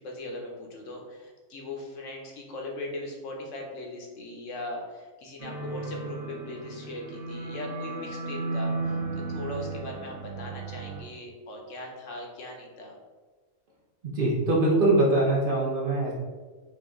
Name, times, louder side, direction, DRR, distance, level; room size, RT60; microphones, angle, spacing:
voice 1, 0.0-12.9, left 2 dB, 75° left, 0 dB, 1.2 m, -39 dB
sound 1, 5.4-11.0, right 3 dB, 65° right, 1.5 m, -34 dB
voice 2, 14.0-16.1, right 2 dB, 45° right, -4 dB, 1.0 m, -23 dB
5.1 x 2.7 x 3.6 m, 1.3 s
omnidirectional pair, 1.3 m